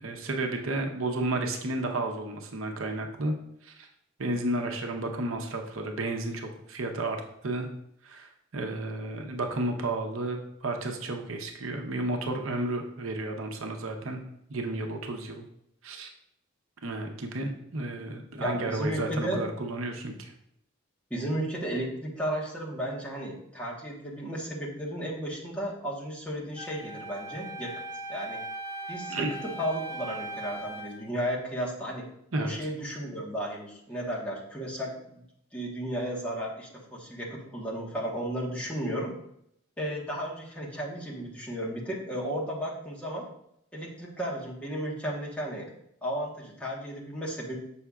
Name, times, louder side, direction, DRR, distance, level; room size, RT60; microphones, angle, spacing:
voice 1, 0.0-3.3 3.6-3.9 4.2-7.2 7.4-7.7 8.0-14.2 14.5-15.4 15.8-16.1 16.8-20.3 29.1-29.3 32.3-32.5, right 2 dB, 80° right, 3 dB, 0.8 m, -32 dB
voice 2, 18.4-19.4 21.1-27.7 28.1-28.4 28.9-32.0 32.4-35.2 35.5-39.1 39.8-43.3 43.7-45.7 46.0-47.6, equal, 5° left, -4 dB, 1.3 m, -34 dB
Wind instrument woodwind instrument, 26.6-31.0, right 2 dB, 15° right, 0.6 m, -39 dB
7.0 x 5.6 x 2.4 m, 0.74 s
head